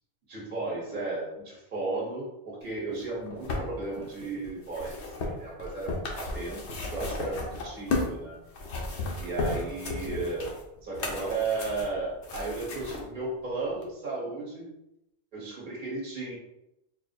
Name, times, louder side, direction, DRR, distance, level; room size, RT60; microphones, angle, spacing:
voice 1, 0.3-8.4 9.2-10.5 10.8-14.7 15.3-16.3, right 3 dB, 45° right, -4 dB, 1.3 m, -34 dB
sound 1, 3.0-8.2 8.5-13.0 13.8-13.9, left 2 dB, 85° left, 1.1 m, -34 dB
4.4 x 2.0 x 4.2 m, 0.88 s
omnidirectional pair, 1.1 m